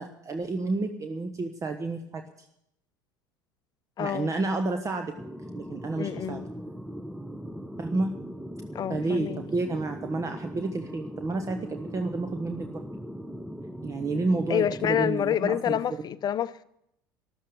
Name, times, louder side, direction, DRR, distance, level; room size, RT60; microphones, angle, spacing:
voice 1, 0.0-2.2 4.0-5.1 5.5-6.4 7.8-8.2 8.9-12.8 13.8-15.8, right 3 dB, 30° right, 1.2 m, -30 dB
voice 2, 4.0-4.3 6.0-6.4 8.7-9.4 14.5-16.6, left 10 dB, 35° left, 0.7 m, -28 dB
sound 1, 5.2-15.1, equal, 5° right, 0.9 m, -40 dB
13.5 x 12.5 x 6.9 m
hypercardioid pair, 70°, 11 cm